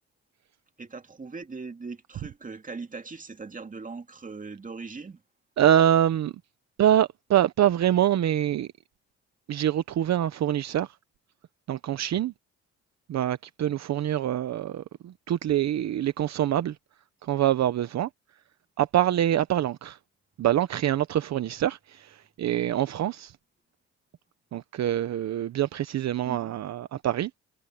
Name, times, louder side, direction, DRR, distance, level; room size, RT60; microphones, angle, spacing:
voice 1, 0.8-5.2 26.2-26.6, right 4 dB, 25° right, 2.2 m, -40 dB
voice 2, 5.6-6.3 6.8-8.7 9.5-10.9 11.7-12.3 13.1-16.7 17.2-18.1 18.8-20.0 20.4-23.3 24.5-27.3, right 11 dB, 60° right, 0.9 m, -25 dB
cardioid pair, 90°, 30 cm